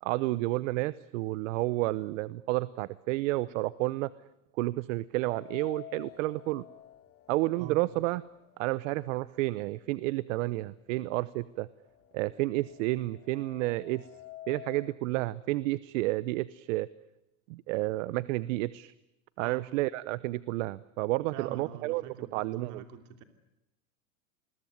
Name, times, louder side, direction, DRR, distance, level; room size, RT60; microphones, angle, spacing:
voice 1, 0.0-4.1 4.6-6.6 7.3-8.2 8.6-11.7 12.1-14.0 14.5-16.9 17.5-18.9 19.4-22.8, right 19 dB, 65° right, 18 dB, 0.9 m, -31 dB
sound 1, 5.2-9.2 9.6-9.7 10.6-10.7 11.1-15.0, left 12 dB, 35° left, 1.6 m, -51 dB
voice 2, 21.3-23.2, right 9 dB, 45° right, 7 dB, 3.1 m, -45 dB
28.5 x 21.5 x 9.5 m, 0.91 s
supercardioid pair, 140°, 41 cm